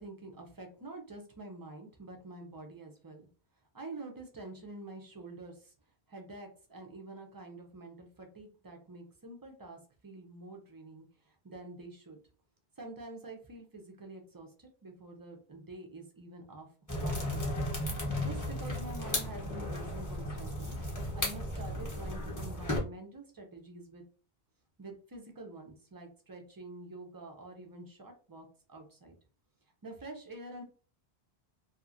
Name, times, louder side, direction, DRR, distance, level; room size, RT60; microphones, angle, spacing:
voice 1, 0.0-3.3 3.7-5.7 6.1-12.2 12.8-16.7 16.9-17.6 18.2-20.8 21.1-24.0 24.8-29.1 29.8-30.6, right 2 dB, 30° right, 2 dB, 0.4 m, -47 dB
sound 1, 16.9-22.8, left 1 dB, 20° left, 0.7 m, -35 dB
2.8 x 2.4 x 2.5 m, 0.38 s
omnidirectional pair, 1.1 m